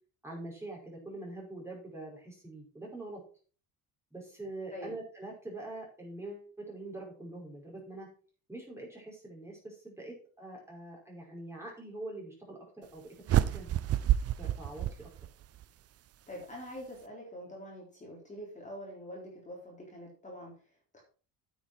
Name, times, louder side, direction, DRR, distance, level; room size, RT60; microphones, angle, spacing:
voice 1, 0.2-3.2 4.1-8.1 8.5-13.7 14.4-15.1, right 2 dB, 5° right, -2 dB, 5.3 m, -44 dB
sound 1, 13.3-15.6, right 12 dB, 45° right, 0.6 m, -29 dB
voice 2, 16.3-21.0, equal, 20° left, -2 dB, 3.8 m, -45 dB
9.5 x 8.1 x 4.6 m, 0.39 s
cardioid pair, 125°, 35 cm